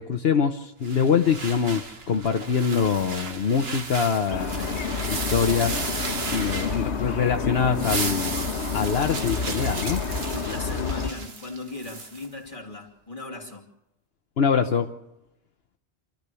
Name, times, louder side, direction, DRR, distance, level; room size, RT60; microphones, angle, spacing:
voice 1, 0.0-5.9 6.3-8.5 8.7-10.0 14.4-14.9, left 6 dB, 65° left, 1.1 m, -24 dB
sound 1, 0.8-7.2 7.6-12.3, right 4 dB, 65° right, 1.6 m, -35 dB
sound 2, 4.3-11.1, left 5 dB, 90° left, 1.4 m, -29 dB
voice 2, 10.3-13.7, left 3 dB, 30° left, 2.7 m, -37 dB
28.0 x 13.5 x 6.9 m
omnidirectional pair, 1.1 m